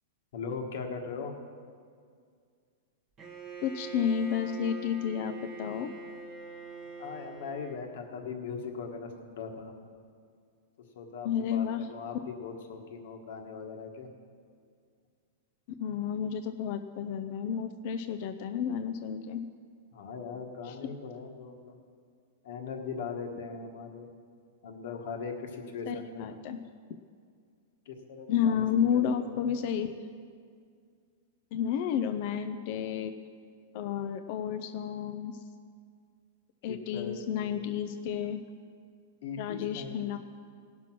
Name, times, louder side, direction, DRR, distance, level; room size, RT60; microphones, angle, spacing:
voice 1, 0.3-1.3 7.0-9.7 10.8-14.1 19.9-21.8 22.4-24.1 24.6-26.4 27.8-29.5 36.7-37.7 39.2-40.2, left 5 dB, 60° left, 4 dB, 1.4 m, -40 dB
Bowed string instrument, 3.2-7.9, right 5 dB, 25° right, 1.4 m, -43 dB
voice 2, 3.6-5.9 11.2-11.8 15.8-19.4 20.7-20.8 25.9-26.6 28.3-30.0 31.5-33.1 33.7-35.4 36.6-38.4 39.4-40.2, left 8 dB, 40° left, 8 dB, 0.5 m, -31 dB
18.0 x 6.0 x 6.1 m, 2.2 s
supercardioid pair, 165°, 0 cm